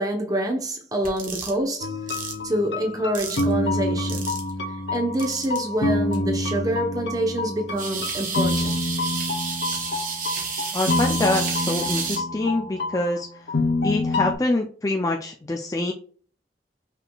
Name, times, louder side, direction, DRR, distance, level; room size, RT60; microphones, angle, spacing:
voice 1, 0.0-1.9 2.4-4.3 4.9-8.9, right 1 dB, 20° right, 0.9 m, -26 dB
sound 1, 1.0-1.5 2.1-2.3 3.1-3.5 4.1-4.5 5.2-5.6 6.1-6.2 7.8-12.2, right 5 dB, 50° right, 1.3 m, -30 dB
sound 2, 1.8-14.3, left 2 dB, 75° left, 0.7 m, -27 dB
voice 2, 10.7-13.3 13.8-15.9, left 2 dB, 20° left, 0.4 m, -25 dB
5.8 x 3.6 x 2.3 m
head